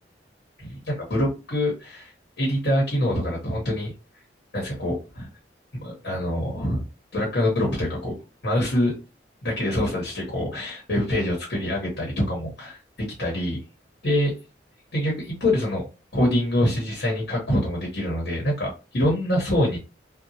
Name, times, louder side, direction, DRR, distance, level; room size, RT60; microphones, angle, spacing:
voice 1, 0.6-2.1 2.4-3.9 4.5-5.3 5.8-6.8 7.1-8.1 8.4-9.0 9.4-12.8 13.2-13.6 14.0-14.3 14.9-15.8 16.1-19.8, left 1 dB, 70° left, -2 dB, 1.1 m, -25 dB
2.9 x 2.0 x 2.7 m, 0.30 s
head